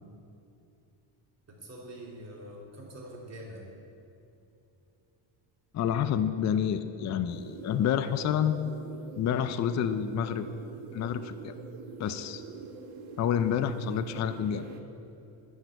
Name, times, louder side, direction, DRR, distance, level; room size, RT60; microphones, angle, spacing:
voice 1, 1.5-3.6, right 1 dB, 35° right, -4 dB, 3.1 m, -44 dB
voice 2, 5.7-8.6 9.1-10.5 10.9-11.5 12.0-12.4 13.2-14.7, left 8 dB, 40° left, 10 dB, 0.4 m, -28 dB
sound 1, 7.3-14.8, right 5 dB, 75° right, 1.3 m, -44 dB
12.0 x 6.4 x 7.9 m, 2.8 s
cardioid pair, 140°, 46 cm